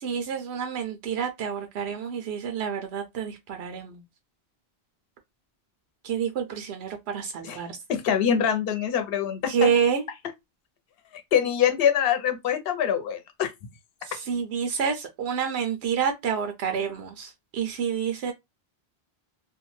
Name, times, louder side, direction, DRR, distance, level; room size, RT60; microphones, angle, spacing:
voice 1, 0.0-4.0 6.0-7.8 9.5-10.0 14.0-18.3, right 7 dB, 90° right, 0.8 m, -28 dB
voice 2, 7.9-9.7 11.3-13.5, left 8 dB, 70° left, 0.8 m, -24 dB
2.6 x 2.1 x 3.1 m
omnidirectional pair, 1.0 m